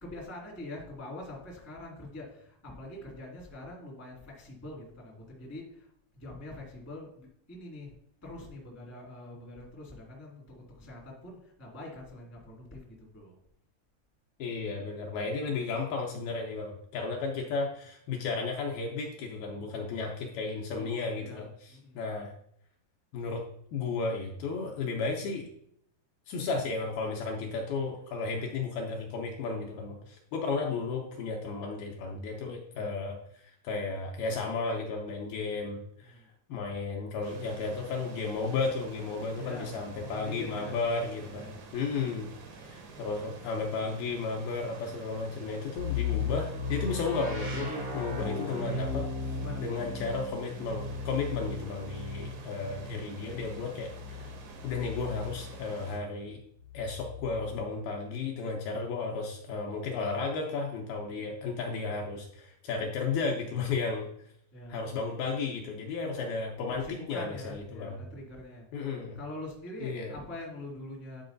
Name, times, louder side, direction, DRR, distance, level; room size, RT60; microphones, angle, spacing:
voice 1, 0.0-7.9 8.2-13.3 20.7-22.0 36.0-36.3 39.3-40.7 41.2-41.7 49.3-49.8 64.5-64.9 66.6-68.6 69.1-71.2, left 1 dB, 10° left, -3 dB, 0.8 m, -44 dB
voice 2, 14.4-22.3 23.1-23.4 23.7-25.4 26.3-36.2 36.5-49.1 49.6-54.3 54.6-56.4 56.7-64.1 64.7-68.0 68.7-69.2 69.8-70.1, left 4 dB, 75° left, 1 dB, 2.4 m, -34 dB
sound 1, 37.2-56.0, right 4 dB, 85° right, 3.6 m, -49 dB
sound 2, 45.8-55.6 56.6-57.6, left 4 dB, 60° right, 1.0 m, -36 dB
10.0 x 4.7 x 3.9 m, 0.69 s
omnidirectional pair, 5.0 m